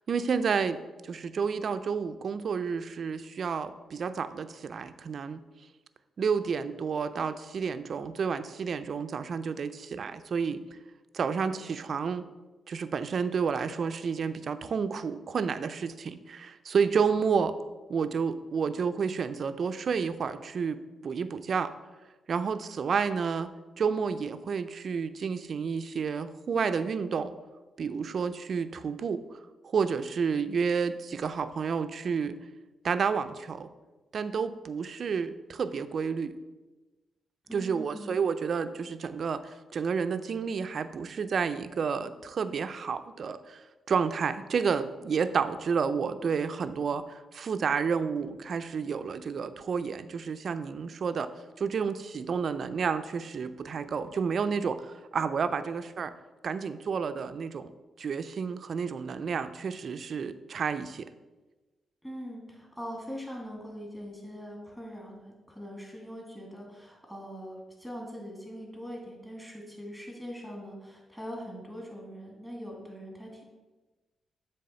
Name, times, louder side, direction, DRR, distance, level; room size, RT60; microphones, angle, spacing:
voice 1, 0.1-5.4 6.2-10.6 11.1-12.3 12.7-17.6 17.9-21.7 22.3-27.3 27.8-29.2 29.6-32.4 32.8-33.7 34.1-36.3 37.5-43.6 43.9-51.3 51.6-56.1 56.4-57.7 58.0-61.1, right 6 dB, 60° right, 11 dB, 0.4 m, -30 dB
voice 2, 37.4-38.2 62.0-73.4, equal, 10° left, -1 dB, 2.3 m, -42 dB
7.6 x 3.4 x 5.7 m, 1.2 s
cardioid pair, 70°, 0 cm